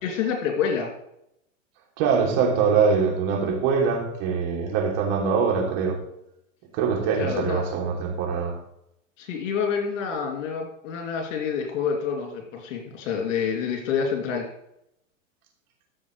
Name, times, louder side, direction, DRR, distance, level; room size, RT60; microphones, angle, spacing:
voice 1, 0.0-0.9 7.2-7.7 9.2-14.5, left 6 dB, 70° left, 2 dB, 3.0 m, -27 dB
voice 2, 2.0-6.0 6.7-8.6, right 5 dB, 55° right, 0 dB, 3.3 m, -23 dB
14.0 x 7.0 x 3.3 m, 0.78 s
hypercardioid pair, 125°, 39 cm